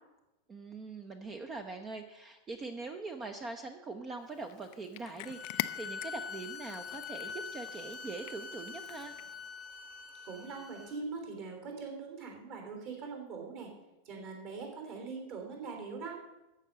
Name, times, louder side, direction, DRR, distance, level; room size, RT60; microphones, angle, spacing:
voice 1, 0.5-9.2, right 3 dB, 20° right, 7 dB, 0.7 m, -42 dB
Cat, 4.3-9.5, left 17 dB, 45° left, 0.4 m, -44 dB
sound 1, 5.2-10.9, left 5 dB, 25° left, 0.9 m, -44 dB
voice 2, 10.2-13.7 14.0-16.2, right 4 dB, 45° right, 2 dB, 3.4 m, -42 dB
14.0 x 5.4 x 7.5 m, 1.0 s
figure-of-eight pair, 90°, 0 cm